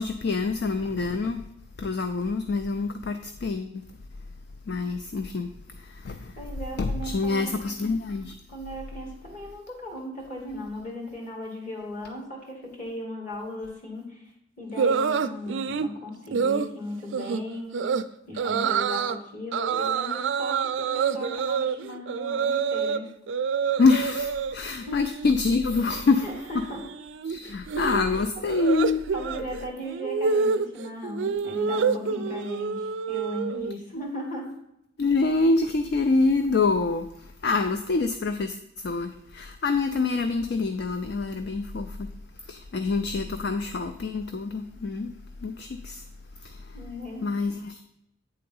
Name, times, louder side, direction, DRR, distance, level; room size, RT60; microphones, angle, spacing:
voice 1, 0.0-1.4 1.8-3.8 4.7-5.5 5.8-6.3 6.8-8.4 23.8-26.3 27.3-29.0 33.9-34.0 35.0-37.1 37.4-38.6 38.8-42.1 42.5-45.1 45.4-46.0 46.4-46.6 47.2-47.8, left 3 dB, 55° left, 8 dB, 0.4 m, -26 dB
voice 2, 6.4-7.5 8.5-14.3 14.6-17.9 18.3-23.1 24.7-25.1 26.2-26.9 27.4-27.6 29.1-34.6 46.7-47.3, left 1 dB, 40° left, 0 dB, 1.9 m, -37 dB
sound 1, 14.8-15.9 16.3-16.7 17.1-17.4 17.7-18.0 18.4-19.2 19.5-23.0 23.3-24.6 24.9-25.3 25.6-33.7, right 6 dB, 70° right, 0.3 m, -27 dB
8.6 x 3.8 x 5.4 m, 0.82 s
head